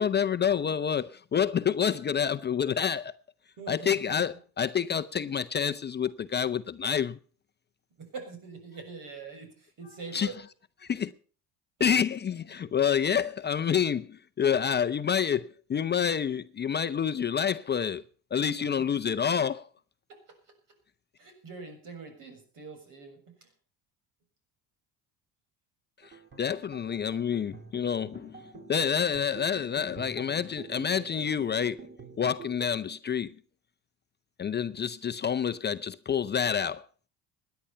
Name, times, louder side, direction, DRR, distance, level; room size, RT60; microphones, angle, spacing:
voice 1, 0.0-3.1 3.7-7.2 10.1-10.3 10.9-11.1 11.8-18.0 18.3-19.6 26.4-28.4 28.7-31.8 32.2-33.3 34.4-36.8, left 7 dB, 25° left, 0.6 m, -28 dB
voice 2, 3.6-4.2 8.0-10.4 18.6-18.9 20.1-20.4 21.2-23.5, right 4 dB, 55° right, 6.8 m, -44 dB
sound 1, 26.0-32.7, right 4 dB, 30° right, 3.1 m, -47 dB
17.0 x 10.5 x 5.6 m
supercardioid pair, 90°, 38 cm